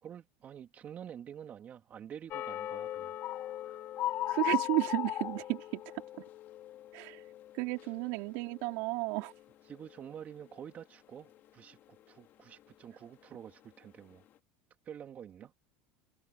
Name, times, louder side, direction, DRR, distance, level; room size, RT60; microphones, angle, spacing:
voice 1, 0.0-3.1 3.6-3.8 9.7-14.2 14.8-15.5, right 9 dB, 35° right, 2.8 m, -48 dB
sound 1, 2.3-8.1 8.4-8.7 9.1-9.3, left 14 dB, 50° left, 2.8 m, -37 dB
voice 2, 4.3-6.0 6.9-7.2 7.5-9.3, right 26 dB, 70° right, 4.5 m, -33 dB
supercardioid pair, 105°, 4 cm